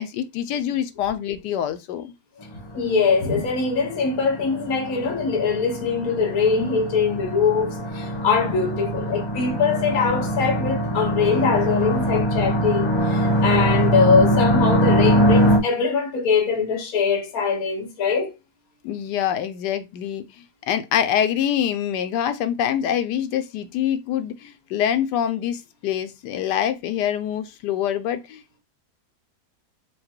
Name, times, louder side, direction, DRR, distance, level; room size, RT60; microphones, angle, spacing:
voice 1, 0.0-2.1 18.8-28.6, left 10 dB, 85° left, 1.3 m, -25 dB
sound 1, 2.4-15.6, equal, 35° left, 0.4 m, -23 dB
voice 2, 2.7-18.3, left 5 dB, 60° left, 1.5 m, -22 dB
4.9 x 2.2 x 4.4 m
omnidirectional pair, 1.8 m